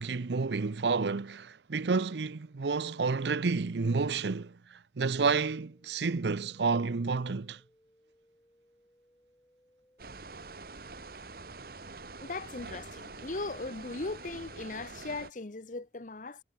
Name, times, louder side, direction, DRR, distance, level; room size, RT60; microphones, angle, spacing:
voice 1, 0.0-7.6, right 4 dB, 75° right, 0.6 m, -30 dB
sound 1, 5.2-14.8, equal, 15° left, 6.6 m, -67 dB
sound 2, 10.0-15.3, right 3 dB, 55° right, 1.7 m, -46 dB
voice 2, 12.2-16.4, left 3 dB, 45° left, 0.9 m, -38 dB
head